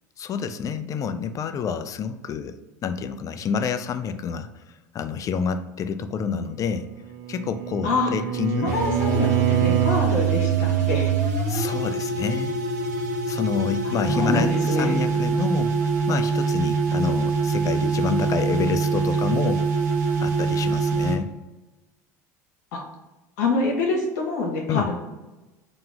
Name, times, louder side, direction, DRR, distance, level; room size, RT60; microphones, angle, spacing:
voice 1, 0.2-2.5 2.8-4.6 4.9-6.9 7.3-8.7 11.5-12.5 13.3-19.7 20.2-21.3 24.7-24.9, left 6 dB, 40° left, 10 dB, 0.4 m, -28 dB
Bowed string instrument, 6.7-10.1, right 9 dB, 50° right, 0.5 m, -27 dB
voice 2, 8.6-11.1 13.8-15.0 22.7-22.8 23.4-25.0, left 3 dB, 75° left, 0 dB, 1.2 m, -26 dB
sound 1, 8.7-21.2, right 5 dB, 85° right, 0.8 m, -24 dB
3.7 x 3.0 x 3.5 m, 1.1 s
hypercardioid pair, 85°, 9 cm